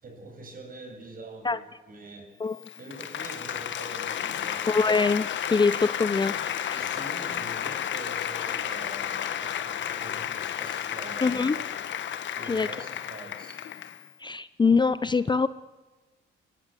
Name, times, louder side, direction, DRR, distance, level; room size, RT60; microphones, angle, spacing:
voice 1, 0.0-4.9 6.3-11.9 12.3-13.6, right 2 dB, 45° right, 4 dB, 6.6 m, -45 dB
Applause, 2.5-14.1, left 9 dB, 70° left, 1.6 m, -32 dB
voice 2, 4.7-6.8 11.2-11.6 12.5-12.7 14.2-15.5, left 4 dB, 20° left, 16 dB, 0.6 m, -24 dB
22.5 x 18.0 x 8.3 m, 1.2 s
cardioid pair, 90°, 20 cm